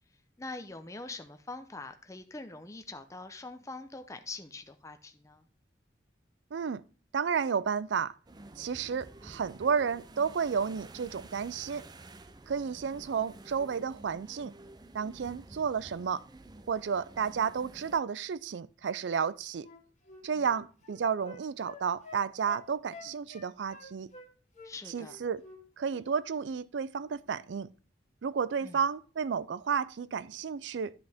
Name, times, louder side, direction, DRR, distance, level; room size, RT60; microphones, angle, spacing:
voice 1, 0.4-5.4 20.3-20.4 24.6-25.2 28.6-28.8, left 3 dB, 15° left, 0.6 m, -44 dB
voice 2, 6.5-6.8 7.1-8.1 8.6-11.9 12.5-14.5 14.9-16.2 16.7-19.7 20.2-24.1 24.9-25.4 25.8-27.7 28.2-30.9, right 6 dB, 80° right, 0.4 m, -32 dB
sound 1, 8.3-18.0, right 2 dB, 25° right, 0.5 m, -51 dB
Wind instrument woodwind instrument, 19.6-24.3 24.5-25.6 25.9-26.1, left 3 dB, 40° left, 1.8 m, -49 dB
11.0 x 5.3 x 3.5 m
head